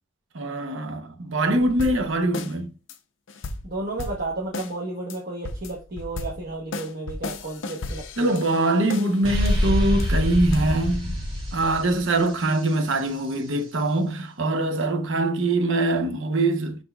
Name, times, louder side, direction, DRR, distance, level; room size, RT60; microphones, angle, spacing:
voice 1, 0.3-2.7 8.2-11.1 11.5-16.8, right 2 dB, 80° right, 0.7 m, -23 dB
sound 1, 1.5-2.5 2.9-3.0 3.3-4.7 5.1-5.2 5.4-9.2 9.5-10.9, left 2 dB, 85° left, 0.6 m, -35 dB
voice 2, 3.6-8.4, right 2 dB, 55° right, 0.9 m, -32 dB
sound 2, 9.2-13.0, left 1 dB, 25° right, 1.4 m, -25 dB
5.5 x 4.1 x 2.2 m
head